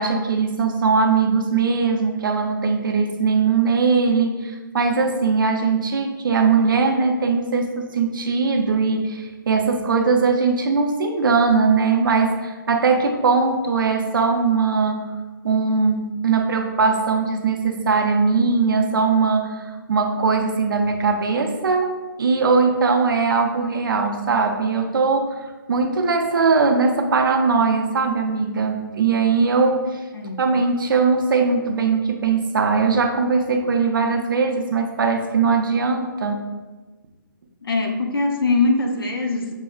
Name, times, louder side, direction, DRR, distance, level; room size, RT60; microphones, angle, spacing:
voice 1, 0.0-15.1 15.4-19.6 19.9-25.4 25.7-30.0 30.4-36.5, right 4 dB, 70° right, 4 dB, 0.5 m, -20 dB
voice 2, 37.6-39.5, left 3 dB, 80° left, 2 dB, 0.7 m, -22 dB
5.6 x 2.0 x 2.3 m, 1.3 s
hypercardioid pair, 170°, 12 cm